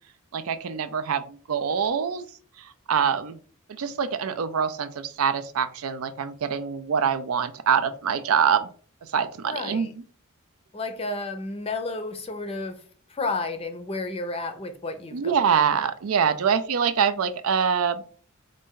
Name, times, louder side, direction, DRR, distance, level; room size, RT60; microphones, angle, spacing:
voice 1, 0.3-2.3 2.6-3.4 3.7-8.7 9.1-9.9 15.1-18.0, right 7 dB, 80° right, 0.5 m, -25 dB
voice 2, 9.4-9.9 10.7-12.8 13.1-15.4, left 3 dB, 25° left, 0.5 m, -31 dB
4.2 x 2.6 x 3.7 m
head